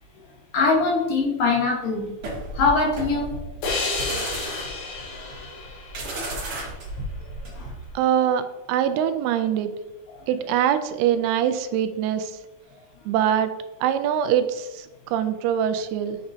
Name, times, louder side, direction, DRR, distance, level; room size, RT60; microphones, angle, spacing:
voice 1, 0.5-2.1 2.5-3.3 3.6-3.8 7.6-7.7 8.9-9.0, left 3 dB, 65° left, -2 dB, 2.8 m, -22 dB
sound 1, 2.2-7.9, right 1 dB, 50° right, 2.0 m, -33 dB
sound 2, 3.6-6.9, left 3 dB, 85° left, 3.4 m, -31 dB
voice 2, 8.0-8.4 8.7-9.7 10.3-12.3 13.1-13.5 13.8-16.2, right 9 dB, 90° right, 10 dB, 2.5 m, -23 dB
7.4 x 6.0 x 2.7 m, 1.0 s
omnidirectional pair, 4.4 m